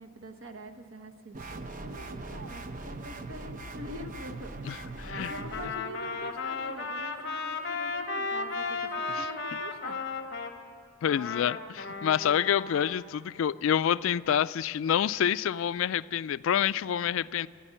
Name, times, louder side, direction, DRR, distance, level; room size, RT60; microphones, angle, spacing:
voice 1, 0.0-10.0, right 1 dB, 70° right, 6 dB, 1.1 m, -45 dB
sound 1, 1.3-5.7, right 2 dB, 40° right, 0.7 m, -40 dB
voice 2, 4.7-5.3 9.1-9.3 11.0-17.5, left 9 dB, 70° left, 17 dB, 0.3 m, -27 dB
Trumpet, 5.0-10.5 11.0-13.0, left 4 dB, 55° left, 1.2 m, -35 dB
14.5 x 10.0 x 9.8 m, 2.3 s
head